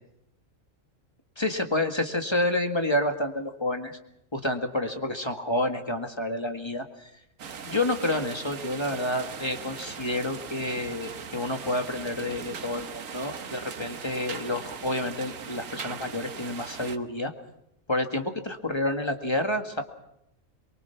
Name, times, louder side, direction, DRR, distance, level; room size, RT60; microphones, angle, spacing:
voice 1, 1.4-4.0 4.3-7.2 7.6-17.3 17.9-19.8, left 1 dB, 20° left, 5 dB, 1.9 m, -29 dB
sound 1, 7.4-17.0, right 6 dB, 75° right, 1.6 m, -39 dB
23.5 x 23.5 x 5.9 m, 0.79 s
omnidirectional pair, 1.4 m